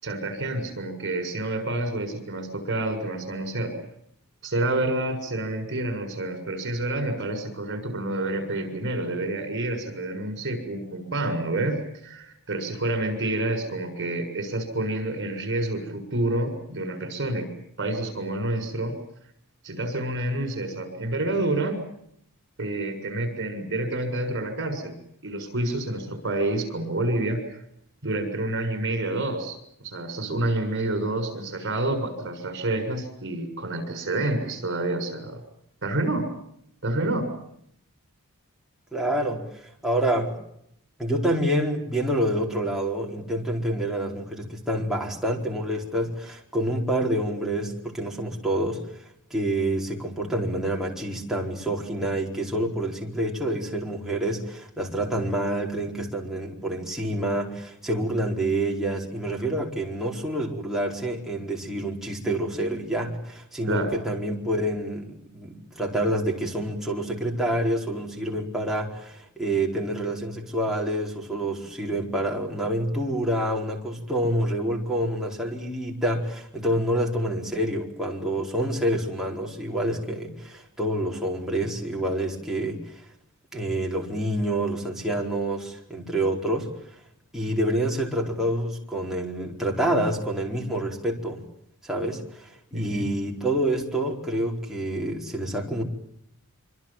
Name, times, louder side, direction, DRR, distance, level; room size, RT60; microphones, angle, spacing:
voice 1, 0.0-3.7 4.4-17.5 17.8-19.0 19.6-21.8 22.6-24.9 25.2-27.4 28.0-29.6 29.8-35.4 35.8-36.3 36.8-37.3 63.7-63.9 92.7-93.0, right 2 dB, 55° right, 7 dB, 6.9 m, -28 dB
voice 2, 38.9-40.4 41.0-83.0 83.5-86.7 87.3-91.4 91.8-95.8, right 1 dB, ahead, -2 dB, 4.6 m, -27 dB
26.0 x 25.5 x 7.5 m, 0.73 s
head